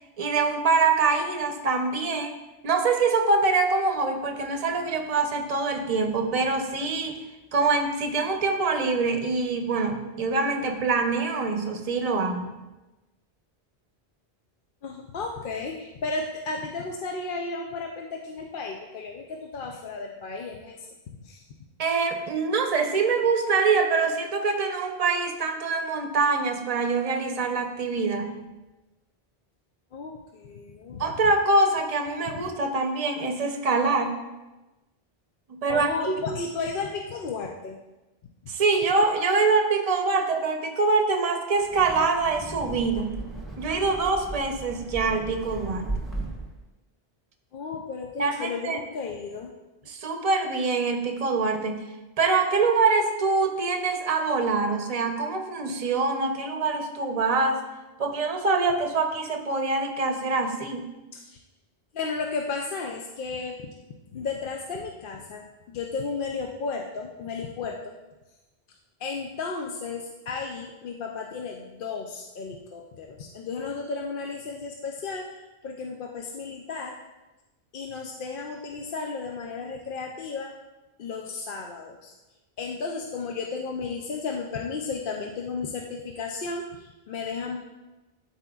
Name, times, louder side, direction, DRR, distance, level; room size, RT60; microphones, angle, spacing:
voice 1, 0.2-2.3 2.6-7.2 7.5-12.6 21.8-28.4 31.0-34.2 35.5-36.1 38.5-43.2 43.6-45.9 48.2-48.8 49.9-51.9 52.2-57.6 58.0-60.9, right 4 dB, 40° right, 5 dB, 0.7 m, -24 dB
voice 2, 14.8-20.9 21.2-21.4 29.9-31.1 32.3-32.5 35.7-37.8 38.4-38.5 47.5-49.5 61.1-61.4 61.9-63.6 64.1-67.9 69.0-77.0 77.7-80.5 81.0-82.1 82.6-87.6, left 4 dB, 65° left, 1 dB, 0.7 m, -34 dB
Wind, 41.6-46.6, right 2 dB, ahead, 1.2 m, -36 dB
12.0 x 4.4 x 2.3 m, 1.1 s
omnidirectional pair, 1.0 m